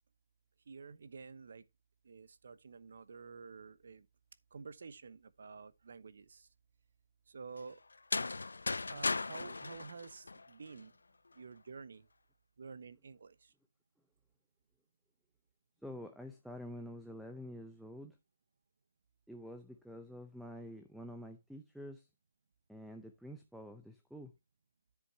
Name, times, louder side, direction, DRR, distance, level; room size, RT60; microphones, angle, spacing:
voice 1, 0.7-1.6 2.0-4.1 4.5-6.5 7.3-7.8 8.9-10.9 11.3-12.1 12.6-13.5, right 5 dB, 55° right, 1.0 m, -50 dB
sound 1, 7.9-10.8, left 3 dB, 90° left, 0.4 m, -37 dB
voice 2, 15.8-18.2 19.3-22.1 22.7-24.3, equal, ahead, 0.6 m, -48 dB
9.9 x 8.0 x 2.8 m
hypercardioid pair, 165°, 0 cm